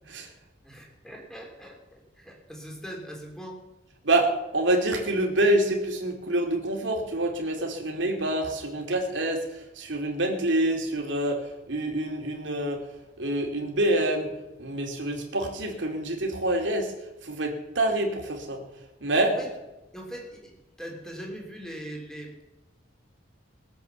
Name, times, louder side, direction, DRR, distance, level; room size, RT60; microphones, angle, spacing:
voice 1, 0.6-3.6 19.2-19.5 19.9-20.5 20.8-22.4, right 1 dB, 5° left, 0 dB, 3.2 m, -41 dB
voice 2, 4.0-12.9 13.2-14.3 14.6-16.9 17.2-18.6 19.0-19.3, right 1 dB, 70° right, 2 dB, 2.7 m, -26 dB
21.0 x 8.1 x 7.0 m, 1.0 s
head